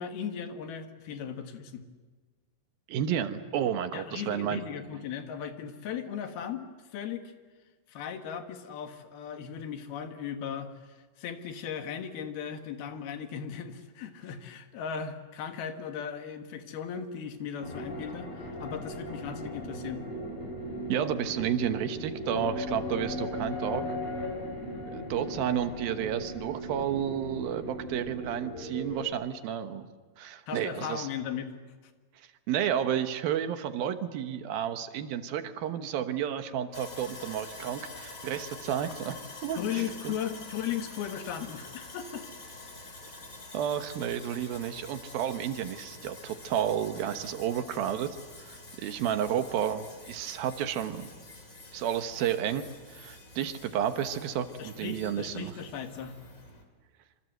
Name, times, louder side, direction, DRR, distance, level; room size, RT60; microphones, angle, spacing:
voice 1, 0.0-1.9 3.9-6.7 6.9-7.2 7.9-20.1 30.5-31.5 39.6-42.3 54.6-56.2, left 8 dB, 80° left, 7 dB, 3.5 m, -37 dB
voice 2, 2.9-4.6 20.9-24.0 24.9-29.9 30.2-31.1 32.5-40.1 43.5-48.2 48.4-51.1 51.7-52.6 52.9-55.5, right 9 dB, 75° right, 9 dB, 3.0 m, -31 dB
sound 1, 17.6-29.1, equal, 45° left, 6.7 m, -37 dB
Sawing, 36.7-56.6, left 2 dB, 25° left, 2.8 m, -47 dB
26.0 x 26.0 x 8.0 m, 1.4 s
omnidirectional pair, 4.4 m